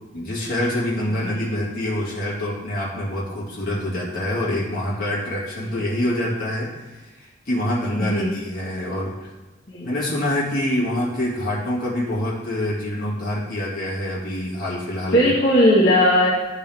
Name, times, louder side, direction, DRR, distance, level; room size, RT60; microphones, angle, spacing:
voice 1, 0.1-9.3 9.8-15.3, left 1 dB, 45° left, -7 dB, 2.3 m, -26 dB
voice 2, 15.1-16.3, equal, 60° left, -8 dB, 1.5 m, -17 dB
12.5 x 4.5 x 3.5 m, 1.1 s
head